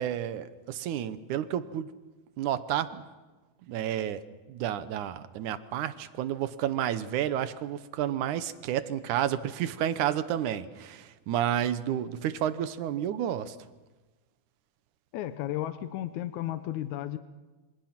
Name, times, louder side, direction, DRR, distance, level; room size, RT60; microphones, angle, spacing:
voice 1, 0.0-1.9 2.4-3.0 3.7-4.2 4.5-13.6, right 10 dB, 85° right, 12 dB, 2.5 m, -30 dB
voice 2, 15.1-17.2, left 13 dB, 80° left, 10 dB, 2.2 m, -33 dB
27.5 x 24.5 x 5.9 m, 1.2 s
omnidirectional pair, 3.4 m